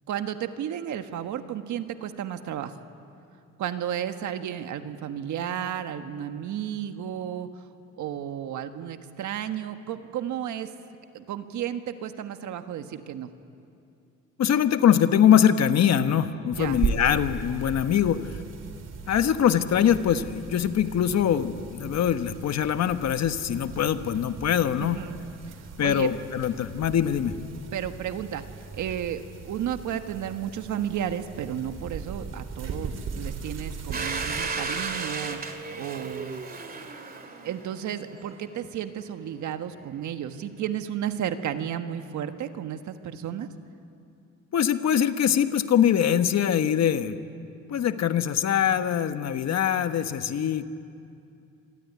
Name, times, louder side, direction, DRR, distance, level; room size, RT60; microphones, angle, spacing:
voice 1, 0.1-2.7 3.6-7.6 8.0-10.7 11.1-13.3 16.6-16.8 24.8-25.2 25.5-25.6 25.8-26.1 27.7-28.4 28.7-35.4 35.7-36.4 37.4-43.5, right 10 dB, 80° right, 8 dB, 1.6 m, -33 dB
voice 2, 14.4-18.3 19.1-25.0 25.8-27.4 44.5-47.2 47.7-50.6, left 9 dB, 65° left, 10 dB, 1.3 m, -23 dB
sound 1, 16.5-34.5, right 5 dB, 60° right, 3.2 m, -38 dB
Domestic sounds home sounds, 33.9-38.6, right 4 dB, 30° right, 2.3 m, -34 dB
27.0 x 22.5 x 9.6 m, 2.6 s
cardioid pair, 110°, 29 cm